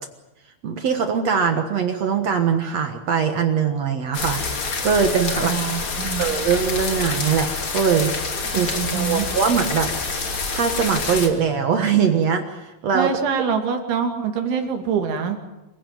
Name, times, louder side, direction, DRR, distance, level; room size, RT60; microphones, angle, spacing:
voice 1, 0.6-4.4 4.8-5.5 6.2-8.1 8.5-9.9 10.5-13.1, right 6 dB, 65° right, 6 dB, 1.6 m, -21 dB
sound 1, 4.1-11.3, left 4 dB, 35° left, 2.7 m, -27 dB
voice 2, 5.4-6.2 8.5-9.3 12.9-15.4, right 7 dB, 90° right, 5 dB, 4.9 m, -25 dB
27.0 x 16.5 x 9.2 m, 1.0 s
omnidirectional pair, 5.2 m